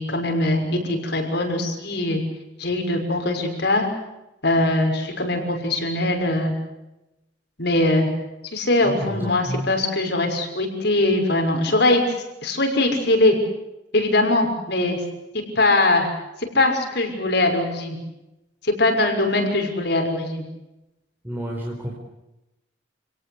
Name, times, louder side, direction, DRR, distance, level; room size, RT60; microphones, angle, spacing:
voice 1, 0.0-2.2 2.6-3.9 4.4-6.5 7.6-8.1 8.5-12.0 12.4-13.4 13.9-15.0 15.6-16.1 16.5-18.0 18.6-20.4, left 2 dB, 60° left, 3 dB, 6.3 m, -21 dB
voice 2, 8.8-9.6 21.2-21.9, equal, 10° right, -2 dB, 4.5 m, -30 dB
29.0 x 18.5 x 8.3 m, 0.94 s
head